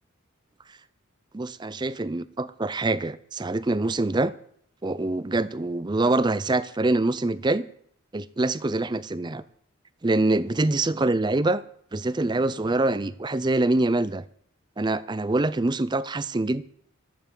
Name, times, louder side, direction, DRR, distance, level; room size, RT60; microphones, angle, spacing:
voice 1, 1.3-4.3 4.8-7.7 8.1-9.4 10.0-11.6 11.9-14.2 14.8-16.6, right 2 dB, 20° right, 0.4 m, -25 dB
12.5 x 7.9 x 7.0 m
head